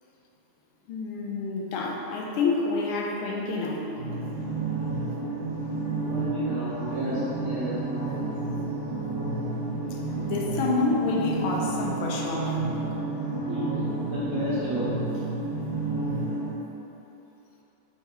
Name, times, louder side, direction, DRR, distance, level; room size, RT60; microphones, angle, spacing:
voice 1, 0.9-4.0 9.9-12.6, left 3 dB, 85° left, 0 dB, 1.4 m, -28 dB
sound 1, 3.9-16.5, right 3 dB, 55° left, 0.6 m, -30 dB
voice 2, 6.0-7.8 13.5-13.7 14.1-15.0, equal, 70° right, -10 dB, 0.8 m, -32 dB
4.6 x 3.1 x 3.5 m, 3.0 s
omnidirectional pair, 2.3 m